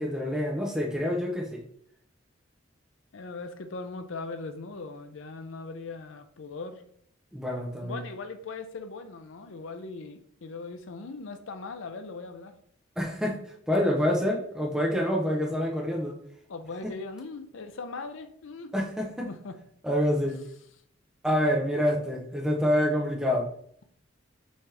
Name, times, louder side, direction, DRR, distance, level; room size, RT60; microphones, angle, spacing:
voice 1, 0.0-1.6 7.3-8.0 13.0-13.4 13.7-16.2 18.7-19.3 19.8-20.4 21.2-23.5, equal, 5° right, 0 dB, 0.6 m, -27 dB
voice 2, 3.1-6.8 7.8-12.6 16.5-18.7 19.2-19.6, left 3 dB, 70° left, 8 dB, 0.5 m, -39 dB
5.5 x 2.9 x 3.3 m, 0.65 s
head